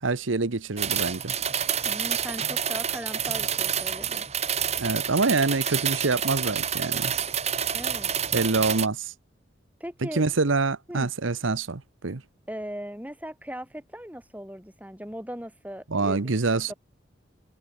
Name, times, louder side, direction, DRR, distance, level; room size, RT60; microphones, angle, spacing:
voice 1, 0.0-1.4 4.8-7.1 8.3-9.1 10.0-12.2 15.9-16.7, right 3 dB, 85° right, 1.1 m, -26 dB
sound 1, 0.8-8.9, right 8 dB, 35° right, 3.9 m, -28 dB
voice 2, 1.8-4.3 7.7-8.1 9.8-10.2 10.9-11.1 12.5-16.7, equal, 10° right, 7.7 m, -38 dB
head